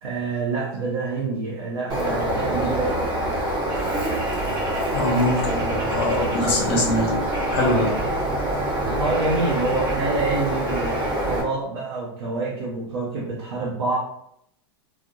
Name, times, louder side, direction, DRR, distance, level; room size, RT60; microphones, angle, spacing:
voice 1, 0.0-2.9 7.5-8.0 9.0-14.0, right 3 dB, 85° right, -4 dB, 0.7 m, -27 dB
Bird, 1.9-11.4, right 1 dB, 35° right, 0.8 m, -25 dB
voice 2, 4.9-7.2 7.5-7.9, left 1 dB, 40° left, -2 dB, 0.8 m, -23 dB
2.3 x 2.1 x 2.7 m, 0.74 s
hypercardioid pair, 120°, 14 cm